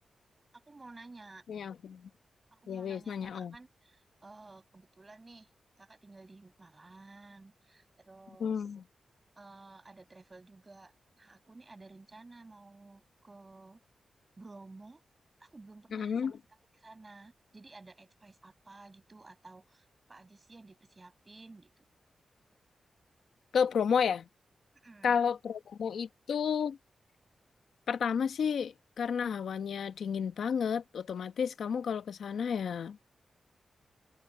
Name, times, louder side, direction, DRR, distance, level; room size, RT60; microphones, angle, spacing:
voice 1, 0.5-1.4 2.5-5.5 5.8-8.5 9.4-13.8 14.4-15.0 15.4-16.4 16.7-21.9 24.8-25.2, right 3 dB, 25° right, 5.8 m, -53 dB
voice 2, 1.5-2.1 2.7-3.5 8.4-8.8 15.9-16.3 23.5-24.2 25.0-26.8 27.9-33.0, left 7 dB, 80° left, 1.1 m, -31 dB
wide cardioid pair, 150°, 0 cm